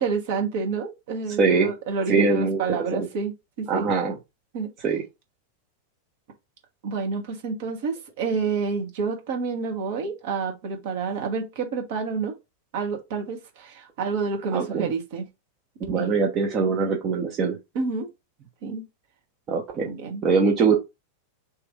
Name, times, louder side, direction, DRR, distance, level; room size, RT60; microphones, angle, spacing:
voice 1, 0.0-3.9 4.5-4.9 6.8-12.4 12.7-15.2 15.9-16.1 16.5-16.7 17.7-18.1 18.6-18.9 19.8-20.2, right 5 dB, 50° right, 1.1 m, -29 dB
voice 2, 1.4-1.7 2.1-2.6 2.9-3.1 3.7-4.2 4.8-5.0 14.5-14.9 15.8-17.6 19.5-19.9 20.2-20.8, right 5 dB, 30° right, 0.8 m, -22 dB
3.0 x 2.5 x 3.5 m
figure-of-eight pair, 90°, 0 cm